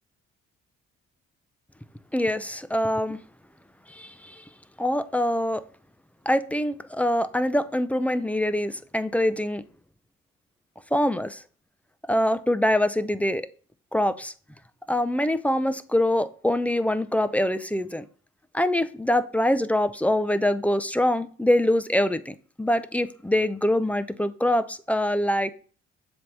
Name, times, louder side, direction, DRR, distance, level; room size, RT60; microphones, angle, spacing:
voice 1, 2.1-3.2 3.9-4.4 4.8-5.6 6.3-9.6 10.9-11.4 12.1-13.4 13.9-14.3 14.9-18.0 18.5-25.5, left 1 dB, 5° left, 0.5 m, -24 dB
7.5 x 3.5 x 5.9 m
cardioid pair, 90°, 30 cm